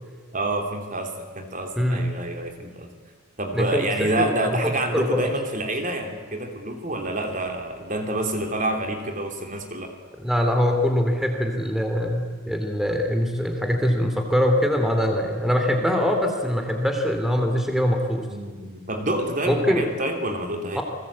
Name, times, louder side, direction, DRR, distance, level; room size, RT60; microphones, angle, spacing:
voice 1, 0.3-2.9 3.4-9.9 18.3-20.8, right 1 dB, 35° right, 4 dB, 3.0 m, -28 dB
voice 2, 3.5-3.9 4.2-4.3 4.9-5.3 10.2-18.2 19.5-19.8 20.7-20.8, equal, ahead, 4 dB, 3.0 m, -23 dB
30.0 x 20.5 x 8.7 m, 1.5 s
head